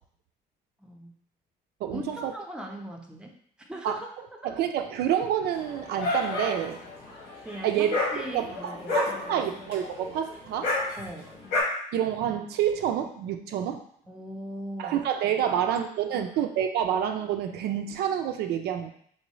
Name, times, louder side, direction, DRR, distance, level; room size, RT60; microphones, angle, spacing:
voice 1, 0.8-1.1 1.9-4.1 4.4-4.5 7.4-9.5 11.0-11.3 14.1-15.0 15.4-15.7 16.1-16.4, equal, 5° right, 1 dB, 0.6 m, -40 dB
voice 2, 1.8-2.3 3.8-4.0 4.4-6.8 7.6-7.9 8.3-10.8 11.9-13.8 14.8-18.9, right 9 dB, 70° right, 6 dB, 0.4 m, -28 dB
Dog, 5.5-11.6, left 2 dB, 80° left, 1.3 m, -31 dB
3.7 x 2.6 x 3.0 m, 0.63 s
cardioid pair, 110°, 17 cm